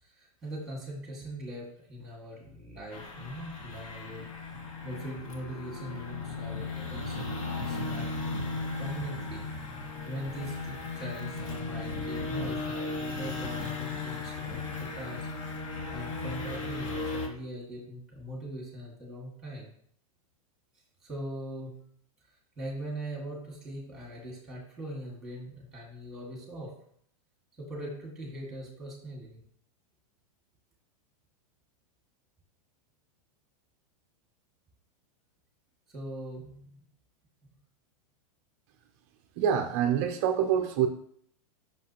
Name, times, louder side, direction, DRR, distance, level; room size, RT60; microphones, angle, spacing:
voice 1, 0.0-4.3 4.8-9.5 10.0-15.3 15.9-19.7 21.0-21.8 22.3-26.7 27.6-29.4 35.9-36.8, right 1 dB, ahead, -2 dB, 1.9 m, -41 dB
sound 1, 2.9-17.3, left 3 dB, 55° left, 1.3 m, -36 dB
voice 2, 39.4-40.9, right 9 dB, 25° right, 6 dB, 0.4 m, -26 dB
7.4 x 6.1 x 2.9 m, 0.64 s
supercardioid pair, 170°, 19 cm